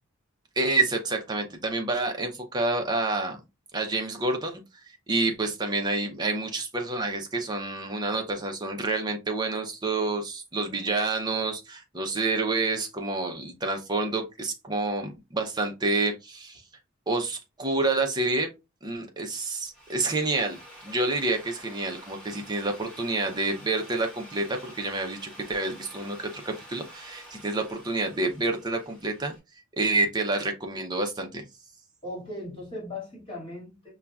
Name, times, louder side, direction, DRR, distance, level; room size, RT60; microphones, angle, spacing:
voice 1, 0.6-3.4 3.7-4.6 4.9-16.6 17.1-18.5 18.8-20.6 20.8-29.3 29.8-31.4, right 2 dB, 20° right, 0.7 m, -28 dB
Drill, 19.6-29.4, equal, 5° left, 1.3 m, -48 dB
voice 2, 32.0-33.9, left 1 dB, 25° left, 2.0 m, -38 dB
5.4 x 2.3 x 2.3 m
head